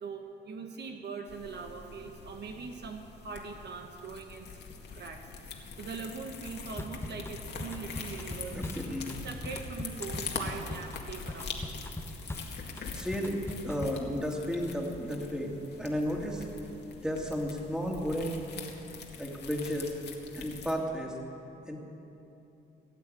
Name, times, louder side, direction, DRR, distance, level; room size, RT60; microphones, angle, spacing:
voice 1, 0.0-4.6 4.9-5.3 5.8-8.6 9.2-11.7, right 5 dB, 60° right, 4 dB, 1.3 m, -41 dB
sound 1, 1.3-20.7, left 5 dB, 60° left, 1.9 m, -43 dB
Drum kit / Drum, 6.8-14.1, left 2 dB, 10° left, 1.0 m, -41 dB
voice 2, 8.5-9.2 12.9-16.5 16.9-18.4 19.1-19.9 20.4-21.2 21.6-21.8, equal, 5° right, 0 dB, 2.4 m, -33 dB
17.0 x 8.3 x 8.6 m, 3.0 s
cardioid pair, 90°, 20 cm